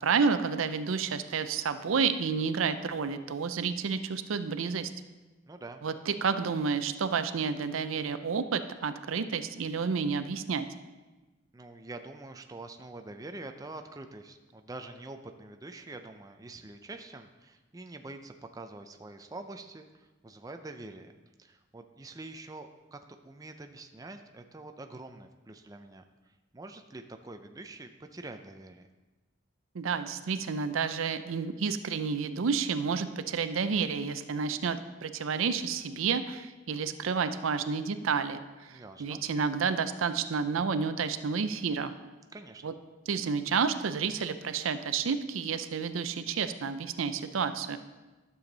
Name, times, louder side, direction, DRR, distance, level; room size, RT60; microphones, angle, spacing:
voice 1, 0.0-4.9 5.8-10.7 29.7-41.9 42.6-42.7 43.1-47.8, right 5 dB, 85° right, 11 dB, 0.5 m, -30 dB
voice 2, 5.5-5.8 11.5-21.1 21.4-23.0 23.2-26.0 26.5-28.9 38.7-39.2 42.3-42.6, right 2 dB, 20° right, 6 dB, 0.4 m, -45 dB
11.5 x 7.1 x 3.9 m, 1.2 s
head